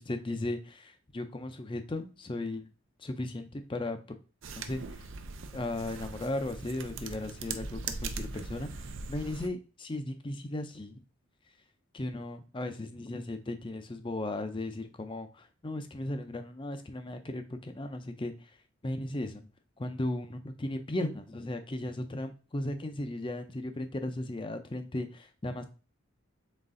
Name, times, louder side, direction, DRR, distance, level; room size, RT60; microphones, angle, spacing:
voice 1, 0.0-2.7 3.0-4.2 4.6-4.8 5.5-11.0 11.9-18.3 18.8-19.3 19.8-25.6, left 1 dB, 25° left, 7 dB, 0.5 m, -36 dB
sound 1, 4.4-9.5, right 4 dB, 60° right, 0.5 m, -40 dB
4.0 x 3.1 x 3.7 m, 0.36 s
head